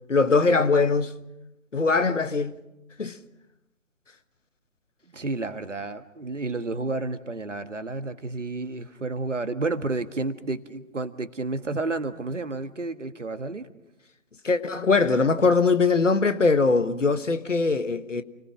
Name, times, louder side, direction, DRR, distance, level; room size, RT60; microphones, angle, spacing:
voice 1, 0.1-1.1 1.7-2.6 3.0-3.2 14.4-18.2, left 4 dB, 65° left, 1.5 m, -21 dB
voice 2, 5.1-13.7, right 3 dB, 60° right, 1.7 m, -31 dB
29.0 x 19.0 x 6.2 m
figure-of-eight pair, 150°, 41 cm